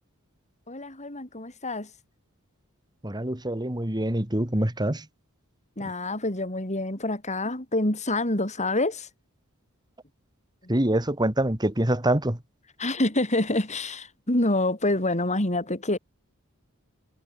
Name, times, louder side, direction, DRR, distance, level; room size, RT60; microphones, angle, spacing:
voice 1, 0.7-1.9 5.8-9.1 10.6-10.8 12.8-16.0, left 2 dB, 35° left, 5.3 m, -27 dB
voice 2, 3.0-5.0 10.7-12.4, right 1 dB, 20° right, 2.2 m, -25 dB
head